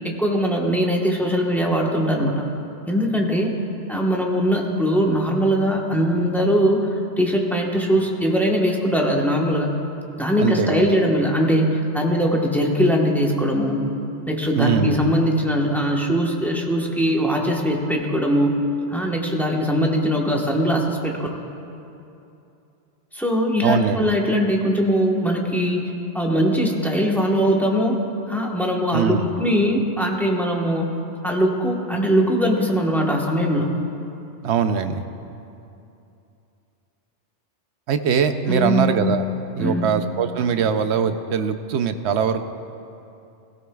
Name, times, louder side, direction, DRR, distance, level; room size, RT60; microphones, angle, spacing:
voice 1, 0.2-2.5 2.9-3.5 3.9-6.9 7.2-9.8 10.2-13.9 14.3-18.6 18.9-21.3 23.1-28.0 28.3-31.0 31.2-33.8 38.5-38.9 39.6-40.0, equal, ahead, -1 dB, 1.1 m, -21 dB
voice 2, 10.4-10.8 14.5-15.1 23.6-24.1 28.9-29.3 34.4-35.0 37.9-39.2 39.6-42.4, right 7 dB, 75° right, 9 dB, 0.9 m, -22 dB
17.0 x 16.5 x 2.3 m, 2.7 s
omnidirectional pair, 1.2 m